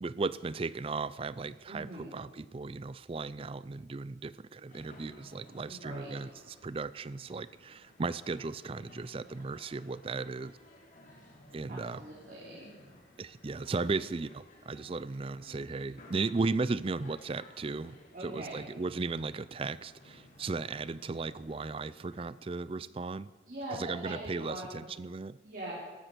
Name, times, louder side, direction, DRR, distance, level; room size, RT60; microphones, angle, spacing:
voice 1, 0.0-10.6 11.5-12.0 13.2-23.3 23.7-25.4, right 3 dB, 30° right, 17 dB, 0.4 m, -36 dB
voice 2, 1.7-2.1 5.6-6.1 11.7-12.7 18.1-18.6 23.5-24.8 25.4-25.7, right 1 dB, 45° right, -5 dB, 3.4 m, -42 dB
sound 1, 4.7-22.2, left 1 dB, 45° left, 3.0 m, -57 dB
13.5 x 12.5 x 6.8 m, 1.3 s
head